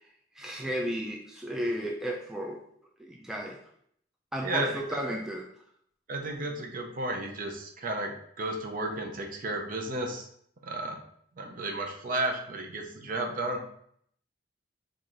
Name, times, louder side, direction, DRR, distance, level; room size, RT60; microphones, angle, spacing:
voice 1, 0.4-2.6 3.0-3.6 4.3-5.5, equal, 5° right, 0 dB, 0.3 m, -33 dB
voice 2, 4.4-5.0 6.1-10.3 10.6-11.0 11.4-13.6, right 2 dB, 45° right, 3 dB, 0.6 m, -33 dB
4.6 x 2.5 x 3.8 m, 0.66 s
head